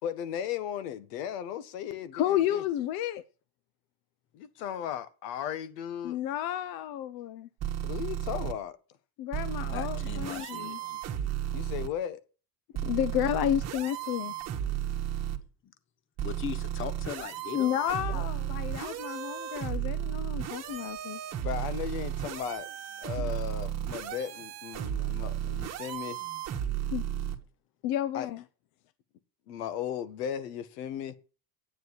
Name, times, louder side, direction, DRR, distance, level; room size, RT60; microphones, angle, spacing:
voice 1, 0.0-2.6 4.3-6.2 7.8-8.8 11.5-12.2 21.3-22.7 23.0-26.2 28.1-28.3 29.5-31.1, left 9 dB, 80° left, 1.5 m, -36 dB
voice 2, 2.1-3.2 6.0-7.5 9.2-11.0 12.8-14.3 17.5-21.2 23.2-23.3 26.9-27.0 27.8-28.4, left 11 dB, 50° left, 0.7 m, -31 dB
sound 1, 7.6-8.5 9.3-11.9 12.7-15.4 16.2-27.4, right 11 dB, 35° right, 1.6 m, -34 dB
voice 3, 9.7-10.8 15.6-15.7 16.2-17.8 18.1-18.2, left 8 dB, 25° left, 1.0 m, -39 dB
9.9 x 9.2 x 6.2 m
cardioid pair, 145°, 47 cm